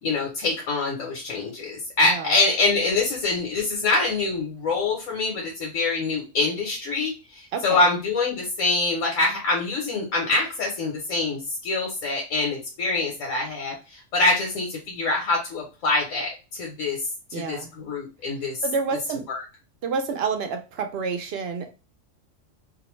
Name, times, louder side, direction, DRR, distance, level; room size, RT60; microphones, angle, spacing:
voice 1, 0.0-18.6 19.3-19.4, left 3 dB, 90° left, -1 dB, 1.2 m, -25 dB
voice 2, 2.0-2.4 7.5-7.9 17.3-17.7 18.6-19.2 19.8-21.7, right 5 dB, 65° right, 5 dB, 0.7 m, -29 dB
2.6 x 2.0 x 3.0 m, 0.30 s
omnidirectional pair, 1.3 m